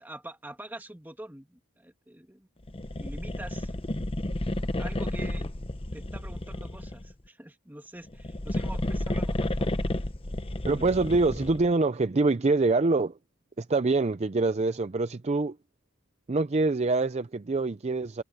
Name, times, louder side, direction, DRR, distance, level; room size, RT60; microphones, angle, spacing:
voice 1, 0.0-2.5 2.9-3.7 4.8-5.5 5.9-9.8, right 1 dB, 10° right, 2.0 m, -45 dB
sound 1, 2.7-7.1 8.0-11.7, left 1 dB, 25° left, 0.9 m, -32 dB
voice 2, 10.7-13.1 13.6-15.6 16.3-18.2, right 3 dB, 30° right, 0.5 m, -25 dB
head